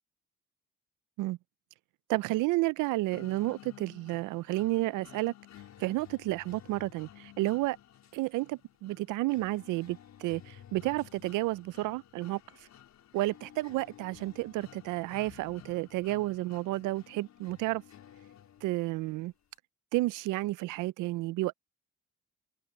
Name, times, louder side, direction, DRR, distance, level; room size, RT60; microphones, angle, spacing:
voice 1, 2.1-5.3 5.8-7.8 8.1-12.4 13.1-17.8 18.6-19.3 19.9-21.5, right 19 dB, 90° right, 0.5 m, -31 dB
sound 1, 3.1-19.1, left 10 dB, 65° left, 3.9 m, -54 dB
open air
cardioid pair, 90°, 30 cm